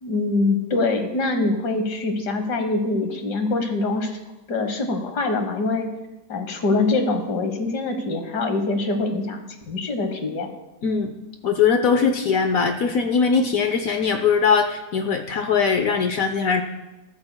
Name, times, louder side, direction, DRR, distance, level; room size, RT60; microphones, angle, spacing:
voice 1, 0.0-4.2 4.5-5.9 6.3-9.4 9.7-10.5, left 3 dB, 85° left, 6 dB, 1.9 m, -24 dB
voice 2, 11.4-16.6, left 5 dB, 65° left, 5 dB, 1.1 m, -20 dB
15.5 x 13.0 x 2.2 m, 1.0 s
omnidirectional pair, 1.7 m